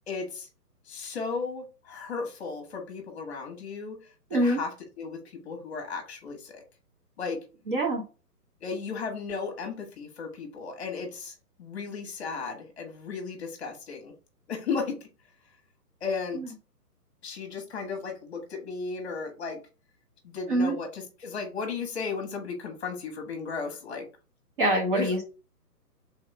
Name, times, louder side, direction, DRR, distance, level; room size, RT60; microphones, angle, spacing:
voice 1, 0.1-0.5 0.8-6.6 7.2-7.4 8.6-14.1 14.5-15.1 16.0-16.4 17.2-19.6 20.2-24.0 24.9-25.2, left 5 dB, 40° left, 3 dB, 1.3 m, -35 dB
voice 2, 7.7-8.0 16.3-16.5 20.5-20.7 24.6-25.2, right 1 dB, 30° right, 0 dB, 1.1 m, -24 dB
3.6 x 3.5 x 3.3 m, 0.34 s
hypercardioid pair, 155°, 48 cm